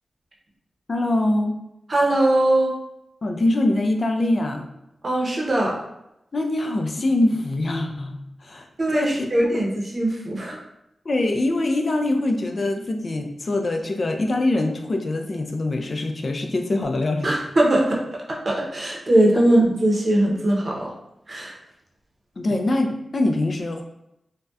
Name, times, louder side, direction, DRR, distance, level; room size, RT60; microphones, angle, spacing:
voice 1, 0.9-1.5 3.2-4.7 6.3-9.7 11.1-17.4 22.4-23.8, left 2 dB, 50° left, 4 dB, 0.3 m, -23 dB
voice 2, 1.9-2.7 5.0-5.7 8.8-10.6 17.2-20.9 21.3-21.5, right 1 dB, 45° right, -2 dB, 0.6 m, -20 dB
2.6 x 2.1 x 2.2 m, 0.85 s
cardioid pair, 60°, 0 cm